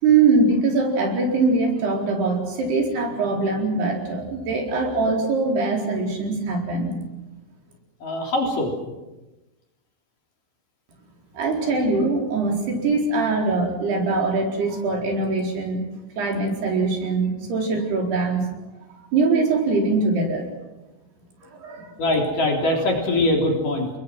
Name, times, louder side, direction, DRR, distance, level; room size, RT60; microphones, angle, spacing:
voice 1, 0.0-6.9 11.3-15.8 16.2-18.5 19.0-20.5 21.4-21.9, right 3 dB, 85° right, 1 dB, 6.4 m, -22 dB
voice 2, 8.0-8.7 22.0-23.9, left 1 dB, 55° left, 0 dB, 5.1 m, -22 dB
29.5 x 21.0 x 6.3 m, 1.0 s
omnidirectional pair, 4.5 m